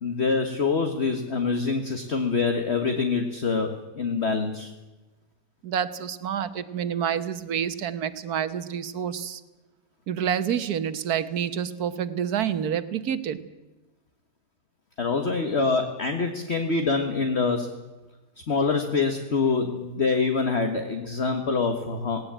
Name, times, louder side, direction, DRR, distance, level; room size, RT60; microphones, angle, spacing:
voice 1, 0.0-4.7 15.0-17.7 18.4-22.2, left 4 dB, 40° left, 6 dB, 1.7 m, -25 dB
voice 2, 5.6-9.4 10.1-13.4, right 8 dB, 65° right, 13 dB, 1.6 m, -28 dB
18.0 x 18.0 x 8.8 m, 1.1 s
omnidirectional pair, 1.8 m